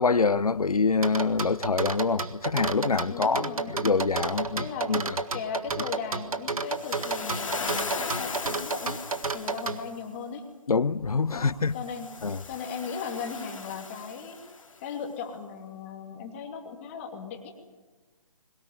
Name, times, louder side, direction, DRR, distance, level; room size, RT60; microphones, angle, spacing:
voice 1, 0.0-5.2 10.7-11.8 12.2-12.4, left 4 dB, 80° left, 0.9 m, -25 dB
sound 1, 1.0-9.8, right 4 dB, 75° right, 1.8 m, -31 dB
voice 2, 3.0-3.8 4.6-4.9 5.3-9.0 9.3-10.5 11.3-14.4 14.8-17.5, left 6 dB, 20° left, 2.7 m, -37 dB
Waves surf, 6.7-9.9 11.7-14.8, left 4 dB, 65° left, 2.2 m, -37 dB
22.0 x 18.5 x 9.8 m
figure-of-eight pair, 155°, 18 cm